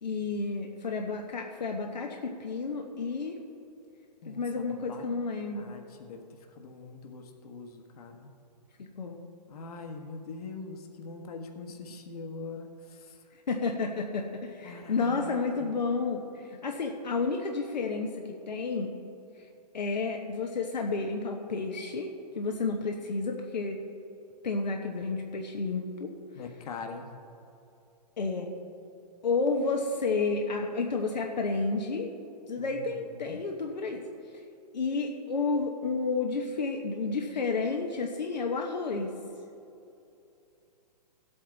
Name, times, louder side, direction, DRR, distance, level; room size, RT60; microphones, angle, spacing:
voice 1, 0.0-3.4 4.3-5.7 8.8-9.2 13.5-18.9 19.7-23.8 24.4-26.1 28.2-28.5 29.2-32.1 32.5-34.0 34.7-39.1, left 4 dB, 85° left, 2 dB, 1.1 m, -31 dB
voice 2, 4.2-5.1 5.5-6.2 6.5-8.3 9.5-13.2 14.6-15.3 15.6-15.7 26.3-27.1 32.6-33.4, left 4 dB, 60° left, 4 dB, 1.5 m, -43 dB
16.0 x 8.5 x 4.0 m, 2.7 s
hypercardioid pair, 125°, 21 cm